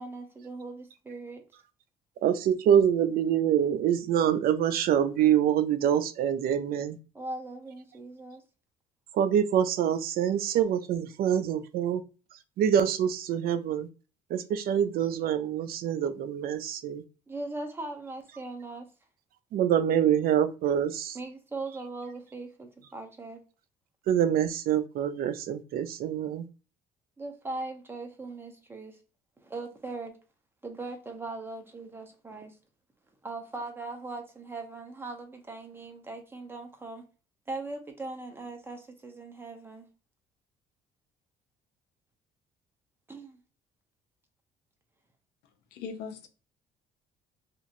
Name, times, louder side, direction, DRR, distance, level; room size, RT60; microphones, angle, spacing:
voice 1, 0.0-1.4 7.1-8.4 17.3-18.9 21.1-23.4 27.2-29.0 29.4-30.2 30.6-32.6 33.2-37.0 37.5-39.9 43.1-43.4, right 3 dB, 15° right, 0.7 m, -39 dB
voice 2, 2.2-7.0 9.1-12.0 12.6-13.9 14.3-17.0 19.5-21.2 24.1-26.5, right 9 dB, 65° right, 0.4 m, -25 dB
voice 3, 45.7-46.3, left 6 dB, 80° left, 0.7 m, -39 dB
2.9 x 2.5 x 2.5 m
cardioid pair, 110°, 17 cm